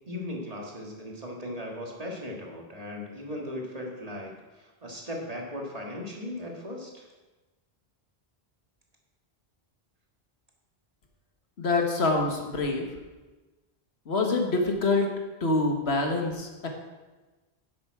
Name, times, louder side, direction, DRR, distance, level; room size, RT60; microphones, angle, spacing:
voice 1, 0.1-4.3 4.6-7.1, left 1 dB, 35° right, -1 dB, 1.8 m, -37 dB
voice 2, 11.6-12.9 14.0-15.1 15.4-16.7, left 3 dB, 85° left, 2 dB, 1.6 m, -26 dB
10.5 x 7.7 x 4.7 m, 1.2 s
omnidirectional pair, 1.0 m